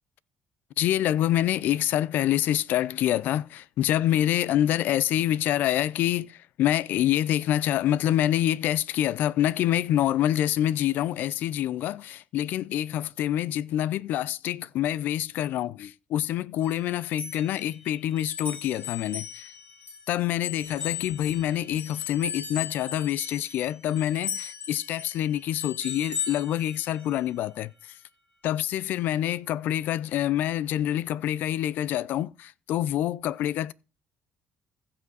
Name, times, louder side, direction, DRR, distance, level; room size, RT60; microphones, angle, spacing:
voice 1, 0.8-6.3 6.6-19.2 20.1-27.7 28.4-33.7, left 12 dB, 75° left, 0.5 m, -26 dB
sound 1, 16.6-20.1 20.4-27.3, left 7 dB, 45° left, 6.3 m, -37 dB
15.5 x 5.9 x 4.0 m
cardioid pair, 85°, 3 cm